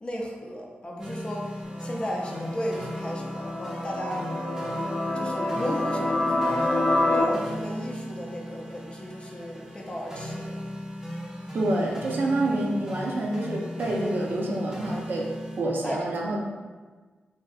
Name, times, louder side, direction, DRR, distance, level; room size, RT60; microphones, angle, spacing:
voice 1, 0.0-4.3 5.1-10.6 15.8-16.4, equal, 30° left, -1 dB, 0.5 m, -35 dB
sound 1, 1.0-15.6, equal, 15° right, 0.6 m, -37 dB
sound 2, 1.7-7.2, left 1 dB, 60° left, 0.7 m, -28 dB
voice 2, 11.5-15.3 15.6-16.4, right 2 dB, 65° right, -1 dB, 0.5 m, -27 dB
3.4 x 2.6 x 2.3 m, 1.4 s
wide cardioid pair, 105°, 4 cm